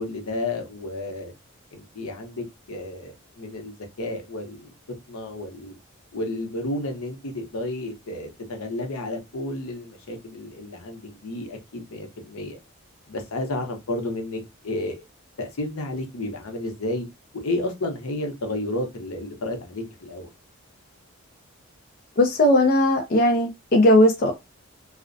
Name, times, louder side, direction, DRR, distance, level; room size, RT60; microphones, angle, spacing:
voice 1, 0.0-1.3 1.7-4.7 5.1-5.8 6.1-12.6 13.1-15.0 15.4-17.1 17.4-20.3, left 2 dB, 85° left, 0.7 m, -31 dB
voice 2, 22.2-24.3, left 1 dB, 40° left, 0.4 m, -18 dB
2.4 x 2.0 x 2.5 m
head